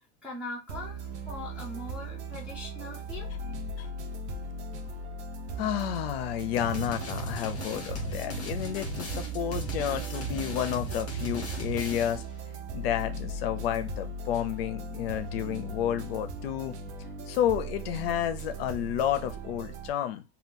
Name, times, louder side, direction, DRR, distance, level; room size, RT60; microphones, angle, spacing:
voice 1, 0.0-3.5, left 2 dB, 5° right, -4 dB, 0.5 m, -41 dB
sound 1, 0.7-19.9, right 2 dB, 85° right, 0.7 m, -38 dB
voice 2, 5.6-12.2 12.7-16.7 17.3-20.2, left 11 dB, 60° left, 9 dB, 0.5 m, -31 dB
sound 2, 6.6-12.3, right 1 dB, 35° left, 1.4 m, -37 dB
2.7 x 2.3 x 3.5 m, 0.26 s
supercardioid pair, 180°, 33 cm